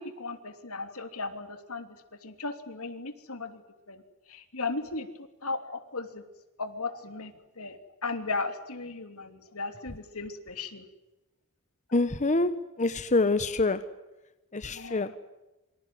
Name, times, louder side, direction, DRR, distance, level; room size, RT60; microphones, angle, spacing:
voice 1, 0.0-1.9 2.2-3.6 3.9-4.0 4.3-5.1 5.4-6.2 6.6-10.8 14.7-15.2, left 3 dB, 80° left, 8 dB, 3.1 m, -36 dB
voice 2, 11.9-12.5 12.8-13.8 14.5-15.1, left 2 dB, 35° left, 11 dB, 1.1 m, -25 dB
27.0 x 25.0 x 7.8 m, 1.0 s
head